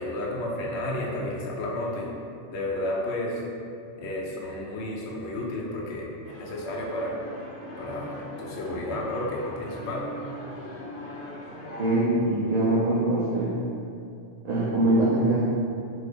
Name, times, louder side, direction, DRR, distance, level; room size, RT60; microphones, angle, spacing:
voice 1, 0.0-2.1 2.5-3.4 4.0-6.1 6.4-7.2 7.8-10.1, left 1 dB, 70° left, -2 dB, 0.8 m, -31 dB
sound 1, 6.2-12.0, equal, 90° left, 1.1 m, -40 dB
voice 2, 11.8-13.5 14.4-15.4, right 1 dB, 70° right, -8 dB, 0.3 m, -23 dB
2.7 x 2.4 x 3.4 m, 2.6 s
omnidirectional pair, 1.3 m